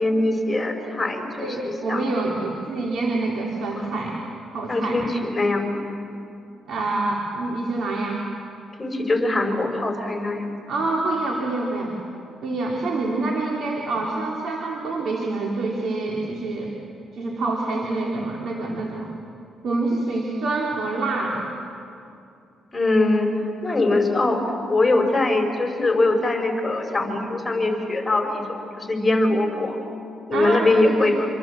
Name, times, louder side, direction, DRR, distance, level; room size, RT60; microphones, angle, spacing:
voice 1, 0.0-2.0 3.7-3.9 4.7-5.8 8.8-10.5 22.7-23.3 23.6-24.4 24.7-29.8 30.3-31.3, left 2 dB, 15° left, 3 dB, 5.6 m, -22 dB
voice 2, 1.4-4.2 4.5-5.0 6.7-8.2 10.7-11.9 12.4-16.7 17.1-19.1 19.6-21.5 30.3-31.2, right 2 dB, 65° right, -1 dB, 3.4 m, -26 dB
27.0 x 26.5 x 7.7 m, 2.5 s
cardioid pair, 90°, 0 cm